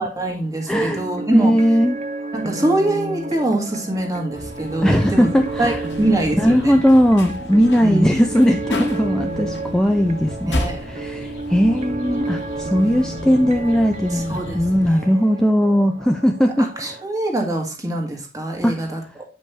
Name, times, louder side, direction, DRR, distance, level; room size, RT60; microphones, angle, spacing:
voice 1, 0.0-1.5 2.3-5.3 5.6-6.8 7.8-8.2 10.5-10.8 12.3-12.6 14.1-14.6 14.9-15.1 16.6-19.2, right 1 dB, 20° right, 2 dB, 1.7 m, -24 dB
sound 1, 0.6-17.0, right 2 dB, 35° right, 0.7 m, -31 dB
voice 2, 0.7-1.0 1.3-2.0 4.8-5.8 6.4-17.0 18.6-18.8, equal, 5° left, 4 dB, 0.4 m, -18 dB
sound 2, 4.3-14.9, left 1 dB, 80° left, 1.3 m, -33 dB
8.6 x 5.3 x 3.3 m, 0.35 s
head